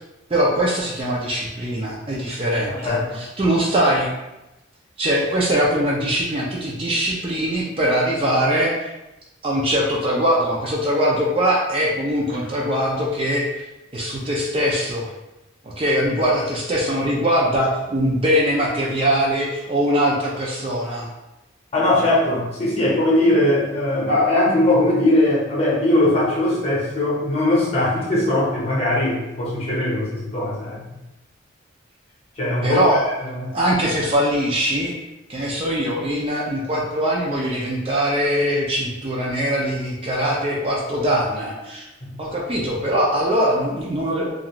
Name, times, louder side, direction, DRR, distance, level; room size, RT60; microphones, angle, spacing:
voice 1, 0.3-4.1 5.0-8.9 9.4-13.5 13.9-15.1 15.6-21.1 32.6-33.1 33.5-34.9 35.3-41.9 42.2-44.3, equal, 30° right, -3 dB, 0.4 m, -22 dB
voice 2, 2.7-3.0 21.7-30.8 32.4-33.0 33.3-33.5, left 1 dB, 30° left, -6 dB, 0.8 m, -20 dB
2.5 x 2.3 x 2.9 m, 0.96 s
head